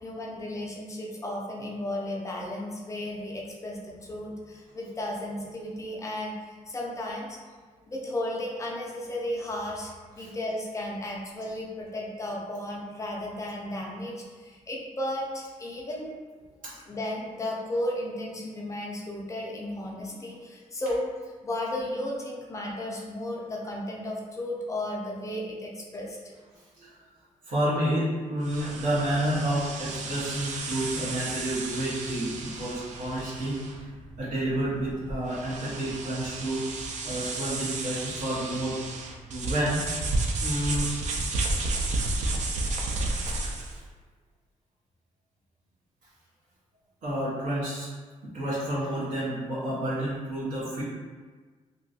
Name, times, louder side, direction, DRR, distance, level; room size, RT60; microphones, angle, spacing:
voice 1, 0.0-7.4 7.9-16.1 16.9-26.2, left 1 dB, 25° left, -3 dB, 0.4 m, -34 dB
voice 2, 27.5-33.6 34.2-36.6 37.0-38.8 39.3-39.8 40.4-40.9 43.4-43.5 47.0-47.9 48.3-50.8, right 1 dB, 85° right, -8 dB, 1.1 m, -29 dB
sound 1, 28.4-43.8, right 2 dB, 60° right, 0.4 m, -32 dB
2.8 x 2.6 x 2.7 m, 1.4 s
wide cardioid pair, 175°, 13 cm